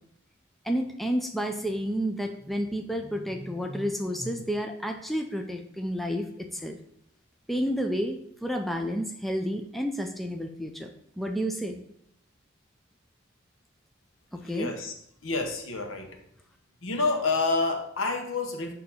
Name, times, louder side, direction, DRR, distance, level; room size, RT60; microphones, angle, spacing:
voice 1, 0.6-6.8 7.5-11.8 14.3-14.7, equal, ahead, 3 dB, 0.4 m, -30 dB
voice 2, 14.4-14.9 15.2-16.2 16.8-18.7, left 3 dB, 85° left, 3 dB, 1.0 m, -28 dB
6.5 x 2.8 x 5.5 m, 0.71 s
head